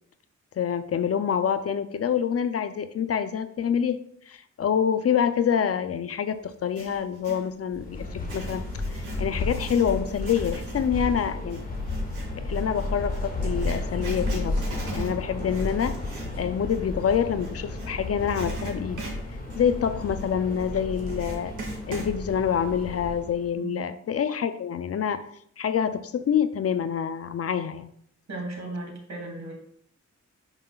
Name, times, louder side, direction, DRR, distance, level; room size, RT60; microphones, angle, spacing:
voice 1, 0.6-4.0 4.3-11.6 12.4-14.6 14.9-16.0 16.4-19.1 19.5-21.5 21.9-25.2 25.6-27.9, left 8 dB, 55° left, 11 dB, 0.4 m, -26 dB
Writing, 6.5-7.5 8.1-17.9 18.3-22.1, right 2 dB, 90° right, 1.9 m, -40 dB
sound 1, 7.7-23.5, left 2 dB, 30° left, 1.4 m, -32 dB
voice 2, 28.3-29.5, right 2 dB, 65° right, 1 dB, 1.9 m, -35 dB
8.9 x 5.6 x 2.3 m, 0.67 s
wide cardioid pair, 165°, 29 cm